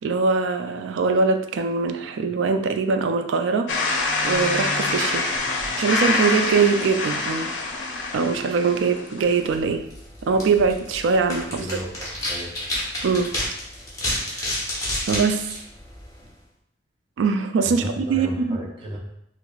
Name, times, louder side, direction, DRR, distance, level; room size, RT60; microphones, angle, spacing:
voice 1, 0.0-5.4 5.8-7.5 8.1-9.8 10.2-11.7 13.0-13.3 14.1-14.2 15.0-15.5 17.2-18.6, right 4 dB, 80° right, 7 dB, 0.3 m, -22 dB
sound 1, 3.7-9.5, left 3 dB, 70° left, 0.5 m, -25 dB
sound 2, 9.4-16.4, left 1 dB, 15° left, 0.8 m, -31 dB
voice 2, 11.6-12.6 17.6-19.0, equal, 25° right, -4 dB, 0.7 m, -34 dB
4.5 x 2.0 x 2.3 m, 0.76 s
head